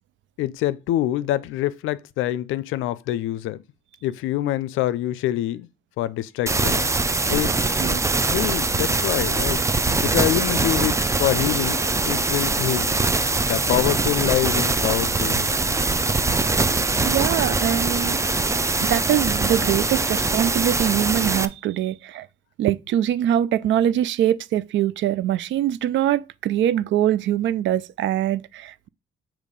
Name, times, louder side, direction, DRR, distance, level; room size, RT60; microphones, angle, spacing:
voice 1, 0.4-3.6 4.0-5.7 6.0-6.9 7.3-7.5 8.3-11.8 12.1-12.9 13.3-15.6, left 14 dB, 90° left, 0.5 m, -25 dB
sound 1, 6.5-21.5, right 3 dB, 15° right, 0.4 m, -22 dB
voice 2, 17.0-18.2 18.8-22.3 22.6-28.9, right 11 dB, 70° right, 0.4 m, -23 dB
6.5 x 3.0 x 5.2 m
cardioid pair, 90°, 20 cm